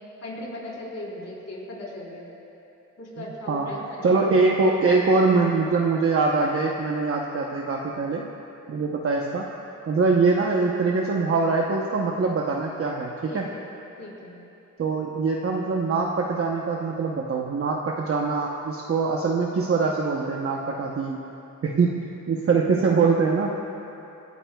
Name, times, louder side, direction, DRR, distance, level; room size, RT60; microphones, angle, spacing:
voice 1, 0.2-2.3 3.0-4.2 13.3-13.6 14.0-14.4, left 1 dB, 55° left, -4 dB, 3.8 m, -37 dB
voice 2, 4.0-8.2 8.7-9.5 9.9-13.5 14.8-21.2 21.6-23.6, right 4 dB, 45° right, -1 dB, 0.9 m, -23 dB
26.5 x 13.5 x 2.3 m, 2.8 s
wide cardioid pair, 130°, 32 cm